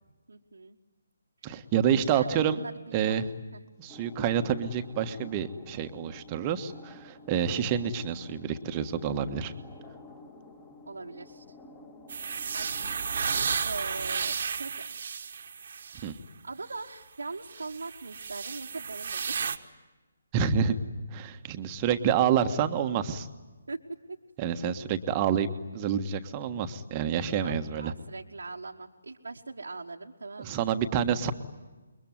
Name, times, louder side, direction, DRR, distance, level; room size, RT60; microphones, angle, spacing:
voice 1, 0.3-0.8 1.4-1.5 2.0-3.2 3.5-3.6 10.9-11.4 12.5-12.8 13.6-14.8 16.4-19.5 23.7-24.2 27.4-31.3, right 3 dB, 65° right, -2 dB, 1.4 m, -41 dB
voice 2, 1.4-2.6 2.9-3.3 3.8-9.5 16.0-16.2 20.3-20.7 21.1-23.3 24.4-25.5 25.7-27.9 30.4-31.3, right 8 dB, 25° right, 8 dB, 1.4 m, -28 dB
sound 1, 3.9-13.4, left 2 dB, 20° left, 2.4 m, -51 dB
sound 2, 12.1-16.1 16.7-16.8 17.5-19.6, right 6 dB, 45° right, 1.4 m, -33 dB
28.0 x 22.5 x 9.4 m, 1.2 s
figure-of-eight pair, 140°, 0 cm